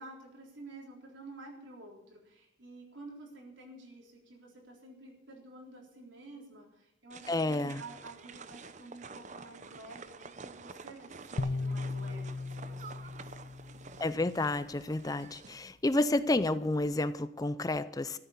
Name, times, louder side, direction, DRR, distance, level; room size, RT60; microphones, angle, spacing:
voice 1, 0.0-13.3, right 2 dB, 70° right, 0 dB, 3.8 m, -50 dB
sound 1, 7.1-15.6, right 4 dB, 35° right, 0.7 m, -49 dB
voice 2, 7.3-7.8 14.0-18.2, left 2 dB, 20° left, 14 dB, 0.4 m, -30 dB
sound 2, 11.4-14.6, left 3 dB, 60° left, 0.8 m, -37 dB
14.0 x 8.2 x 8.4 m, 0.82 s
head